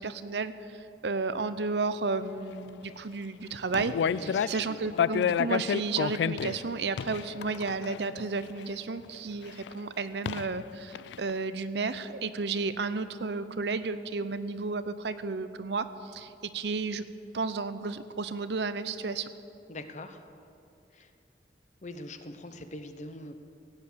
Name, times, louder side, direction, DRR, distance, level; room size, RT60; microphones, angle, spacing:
voice 1, 0.0-17.1 17.3-19.3, right 4 dB, 70° right, 13 dB, 0.7 m, -32 dB
sound 1, 3.6-4.7 5.0-8.6 9.7-9.8 10.2-10.6 10.9-11.3, left 7 dB, 80° left, 0.3 m, -29 dB
voice 2, 4.1-5.0 19.7-20.2 20.9-21.1 21.8-23.3, left 2 dB, 40° left, 8 dB, 0.9 m, -43 dB
17.0 x 9.3 x 6.8 m, 2.6 s
head